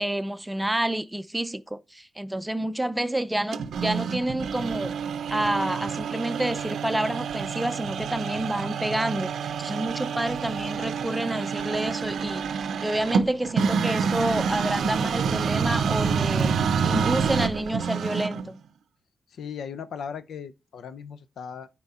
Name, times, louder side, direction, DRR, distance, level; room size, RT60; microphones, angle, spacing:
voice 1, 0.0-4.9 5.3-16.5 16.8-18.6, right 1 dB, 10° right, 0.5 m, -29 dB
sound 1, 3.5-18.5, right 6 dB, 80° right, 0.6 m, -28 dB
voice 2, 19.3-21.7, left 7 dB, 75° left, 0.6 m, -37 dB
9.4 x 4.5 x 4.2 m
cardioid pair, 80°, 0 cm